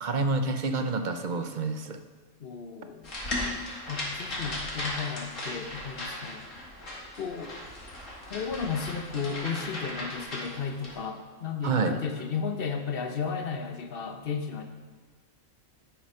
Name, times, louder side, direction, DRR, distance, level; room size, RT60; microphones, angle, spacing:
voice 1, 0.0-2.0 11.6-11.9, right 3 dB, 50° right, 7 dB, 0.6 m, -28 dB
voice 2, 2.4-3.1 3.9-6.4 7.2-7.5 8.3-14.6, left 6 dB, 50° left, 6 dB, 1.0 m, -34 dB
sound 1, 3.0-10.9, left 1 dB, 75° left, 2.6 m, -37 dB
11.0 x 6.3 x 5.5 m, 1.4 s
omnidirectional pair, 1.3 m